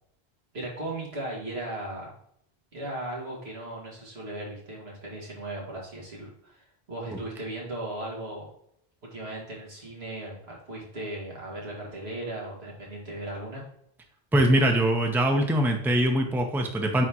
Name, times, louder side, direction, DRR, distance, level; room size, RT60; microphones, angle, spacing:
voice 1, 0.5-2.1 2.7-8.5 9.1-13.6, right 1 dB, 85° right, -3 dB, 2.3 m, -37 dB
voice 2, 14.3-17.0, right 1 dB, ahead, 3 dB, 0.7 m, -22 dB
9.1 x 3.6 x 3.0 m, 0.71 s
omnidirectional pair, 1.0 m